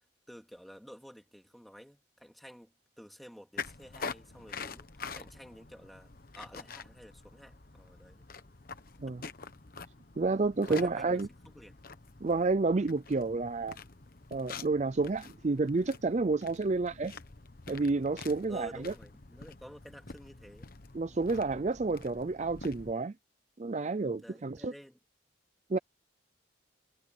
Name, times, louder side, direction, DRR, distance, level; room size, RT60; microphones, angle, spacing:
voice 1, 0.0-8.3 10.7-11.8 18.5-20.7 24.2-25.0, equal, ahead, 2.5 m, -51 dB
sound 1, 3.6-22.9, left 4 dB, 45° left, 1.2 m, -46 dB
voice 2, 10.2-11.3 12.2-13.8 14.3-17.2 17.7-18.9 20.9-23.1 23.6-24.7 25.7-25.8, right 3 dB, 35° right, 0.4 m, -30 dB
head